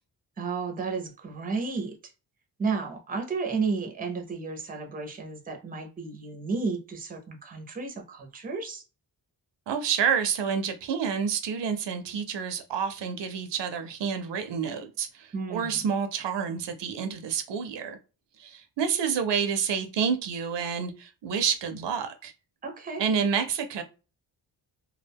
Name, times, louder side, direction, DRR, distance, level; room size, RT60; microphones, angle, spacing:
voice 1, 0.4-2.0 2.6-8.8 15.3-15.8 22.6-23.0, right 4 dB, 20° right, 3 dB, 0.5 m, -32 dB
voice 2, 9.7-18.0 18.4-22.3 23.0-23.8, right 7 dB, 80° right, 8 dB, 0.6 m, -29 dB
2.2 x 2.2 x 3.4 m, 0.32 s
wide cardioid pair, 150°, 42 cm